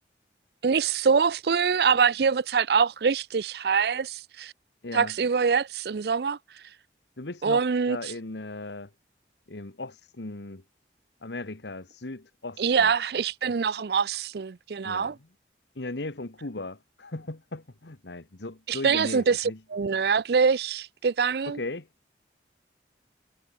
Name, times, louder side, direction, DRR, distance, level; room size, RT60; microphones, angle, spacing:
voice 1, 0.6-4.5 4.9-6.4 7.4-8.0 12.6-15.2 18.7-21.6, right 6 dB, 65° right, 0.5 m, -24 dB
voice 2, 4.8-5.1 7.2-8.9 9.5-10.6 11.2-12.9 14.8-15.1 15.7-19.6 21.4-21.9, left 2 dB, 80° left, 1.5 m, -37 dB
head